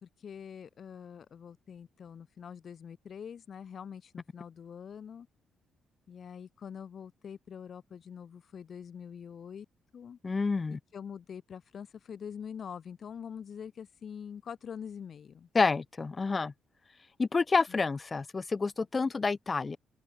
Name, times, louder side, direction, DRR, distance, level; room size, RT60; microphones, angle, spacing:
voice 1, 0.0-5.3 6.1-9.7 9.9-10.2 10.9-15.5 17.7-17.8, left 7 dB, 55° left, 4.3 m, -44 dB
voice 2, 10.2-10.8 15.5-16.5 17.2-19.8, left 4 dB, 30° left, 0.5 m, -28 dB
open air
cardioid pair, 90°, 0 cm